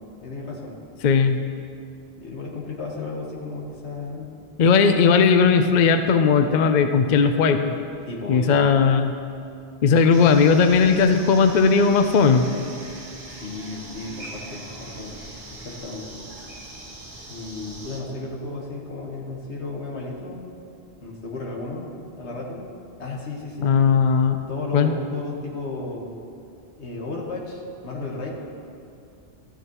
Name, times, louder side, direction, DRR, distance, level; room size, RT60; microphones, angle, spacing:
voice 1, 0.2-0.8 2.2-4.4 4.8-4.9 8.1-8.6 13.3-15.2 15.5-16.1 17.3-20.6 21.0-22.7 23.0-23.8 24.5-26.2 26.8-28.3, left 3 dB, 75° left, -2 dB, 1.7 m, -34 dB
voice 2, 1.0-1.5 4.6-7.7 8.3-9.1 9.8-12.5 23.6-24.4 24.7-24.9, left 5 dB, 55° left, 7 dB, 0.5 m, -17 dB
sound 1, 10.1-18.0, right 2 dB, 50° right, 1.6 m, -41 dB
14.0 x 9.7 x 3.0 m, 2.5 s
omnidirectional pair, 1.1 m